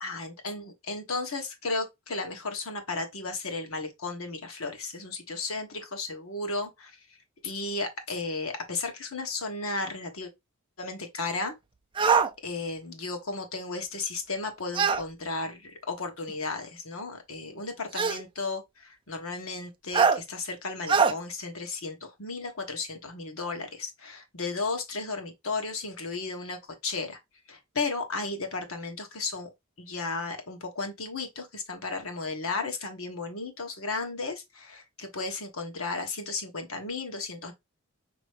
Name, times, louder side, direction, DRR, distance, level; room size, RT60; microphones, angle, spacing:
voice 1, 0.0-7.2 7.4-10.3 10.8-11.5 12.4-27.2 27.5-29.5 29.8-37.5, left 3 dB, 75° left, 1.2 m, -34 dB
sound 1, 12.0-12.3 14.7-15.0 16.3-16.4 17.9-18.2 19.9-20.2 20.9-21.1, right 5 dB, 25° right, 0.3 m, -22 dB
5.4 x 3.0 x 3.1 m
head